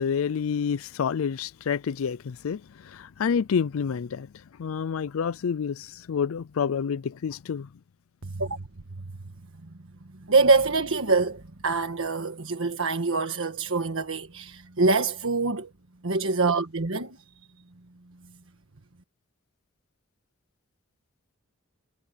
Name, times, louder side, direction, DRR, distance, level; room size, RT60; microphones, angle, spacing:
voice 1, 0.0-7.7, left 6 dB, 75° left, 0.4 m, -28 dB
voice 2, 8.2-8.6 9.6-9.7 10.2-15.7 16.0-17.2, right 3 dB, 70° right, 1.5 m, -25 dB
head